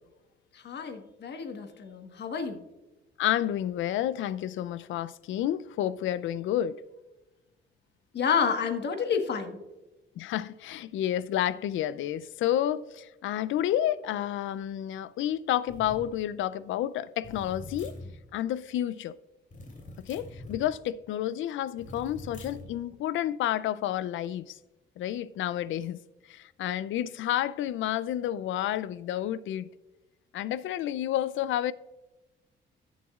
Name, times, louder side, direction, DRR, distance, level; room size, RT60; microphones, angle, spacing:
voice 1, 0.5-2.6 8.1-9.6, left 6 dB, 60° left, 1.4 m, -29 dB
voice 2, 3.2-6.8 10.2-17.9 18.3-19.1 20.1-24.4 25.0-26.0 26.3-29.7 30.3-31.7, left 12 dB, 75° left, 0.5 m, -30 dB
sound 1, 15.7-16.1 17.2-18.1 19.5-20.6 21.8-22.7, left 1 dB, 40° left, 3.1 m, -43 dB
18.0 x 7.2 x 2.4 m
cardioid pair, 90°, 20 cm